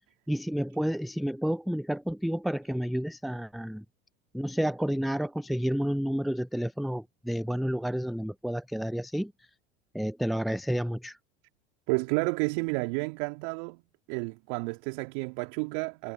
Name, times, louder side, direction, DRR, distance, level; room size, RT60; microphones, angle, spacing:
voice 1, 0.3-3.8 4.3-9.3 9.9-11.2, equal, ahead, 0.4 m, -30 dB
voice 2, 11.9-13.8 14.1-16.1, right 35 dB, 60° right, 3.5 m, -31 dB
figure-of-eight pair, 80°, 30 cm